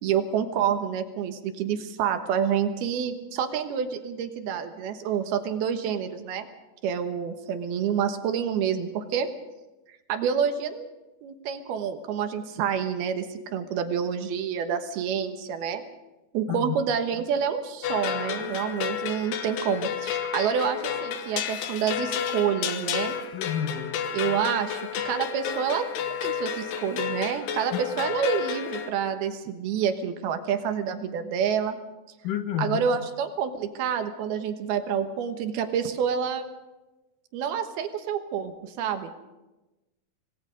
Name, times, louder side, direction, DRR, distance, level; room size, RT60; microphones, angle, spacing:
voice 1, 0.0-6.5 6.8-9.3 10.1-10.9 11.2-15.8 16.3-23.2 24.1-25.9 26.2-31.8 32.6-36.5 37.3-39.1, right 7 dB, 75° right, 7 dB, 3.2 m, -28 dB
sound 1, 17.8-28.9, left 8 dB, 90° left, 3.3 m, -31 dB
voice 2, 23.3-23.9 32.2-32.8, left 10 dB, 65° left, 8 dB, 2.7 m, -29 dB
26.5 x 19.5 x 5.2 m, 1.1 s
omnidirectional pair, 4.6 m